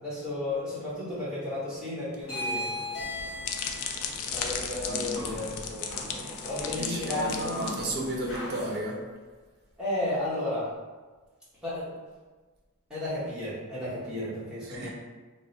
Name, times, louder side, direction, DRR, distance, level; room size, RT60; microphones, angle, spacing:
voice 1, 0.0-2.7 4.2-6.0 6.4-7.6 9.8-10.7 11.6-12.0 12.9-14.9, left 1 dB, 5° right, -11 dB, 0.8 m, -33 dB
sound 1, 2.2-8.8, equal, 65° left, 0.8 m, -38 dB
sound 2, 3.0-8.3, left 6 dB, 85° left, 0.3 m, -36 dB
voice 2, 6.7-9.0 14.7-14.9, right 1 dB, 45° right, -2 dB, 0.5 m, -33 dB
2.7 x 2.1 x 2.7 m, 1.3 s
head